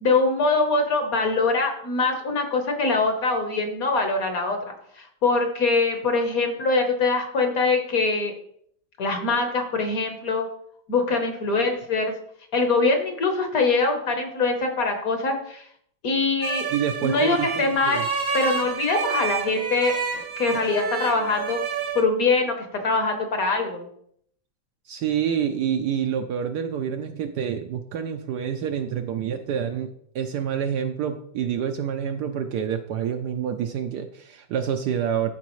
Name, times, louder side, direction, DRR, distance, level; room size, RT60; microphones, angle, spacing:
voice 1, 0.0-8.3 9.0-10.5 10.9-12.1 12.5-15.7 16.0-16.7 17.0-18.0 18.3-19.9 20.4-21.6 21.9-23.9, left 3 dB, 55° left, 5 dB, 1.4 m, -23 dB
sound 1, 16.4-22.0, right 5 dB, 40° right, 0.9 m, -29 dB
voice 2, 16.7-18.0 24.9-35.3, right 8 dB, 70° right, 7 dB, 1.0 m, -27 dB
13.5 x 4.6 x 3.1 m, 0.67 s
omnidirectional pair, 2.1 m